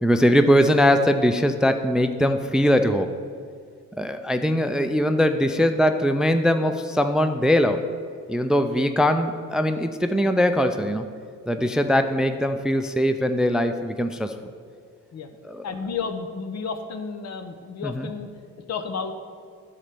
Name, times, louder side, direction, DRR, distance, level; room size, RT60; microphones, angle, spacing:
voice 1, 0.0-3.1 4.0-7.8 8.3-11.1 11.5-14.3 15.4-15.6 17.8-18.1, equal, ahead, 8 dB, 0.4 m, -21 dB
voice 2, 8.7-9.0 11.6-11.8 15.1-15.3 15.6-18.3 18.7-19.1, left 5 dB, 60° left, 7 dB, 1.0 m, -32 dB
11.0 x 4.2 x 6.8 m, 2.1 s
cardioid pair, 90°, 30 cm